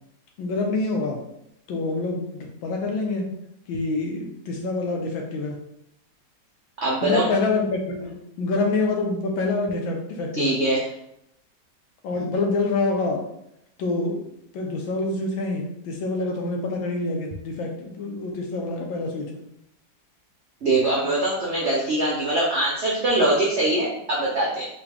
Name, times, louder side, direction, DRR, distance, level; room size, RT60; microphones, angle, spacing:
voice 1, 0.4-1.2 1.7-3.3 3.7-5.6 7.0-10.5 12.0-13.2 13.8-14.2 14.5-19.4, left 3 dB, 90° left, 1 dB, 1.5 m, -26 dB
voice 2, 6.8-7.3 10.3-10.8 20.6-24.7, right 2 dB, 85° right, -4 dB, 0.6 m, -22 dB
3.9 x 2.4 x 3.4 m, 0.78 s
omnidirectional pair, 2.1 m